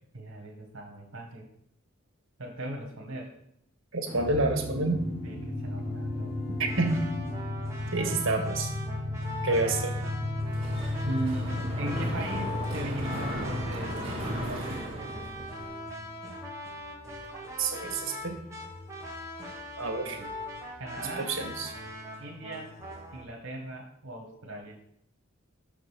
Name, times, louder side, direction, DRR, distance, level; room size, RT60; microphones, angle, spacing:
voice 1, 0.1-1.5 2.4-3.3 5.2-6.3 9.5-9.7 11.0-15.5 20.0-20.3 20.8-21.4 22.2-22.8 23.1-24.8, right 1 dB, 90° right, -1 dB, 1.3 m, -38 dB
voice 2, 3.9-5.0 6.6-7.0 7.9-8.7 9.4-9.9 17.3-18.4 19.8-20.2 21.2-21.7, right 3 dB, 70° right, 4 dB, 1.6 m, -28 dB
sound 1, 4.1-16.3, left 1 dB, 10° left, 3.3 m, -35 dB
sound 2, 6.7-23.2, left 1 dB, 15° right, 1.5 m, -41 dB
Mechanisms, 10.5-15.7, right 1 dB, 30° right, 2.0 m, -36 dB
6.1 x 5.1 x 6.2 m, 0.70 s
head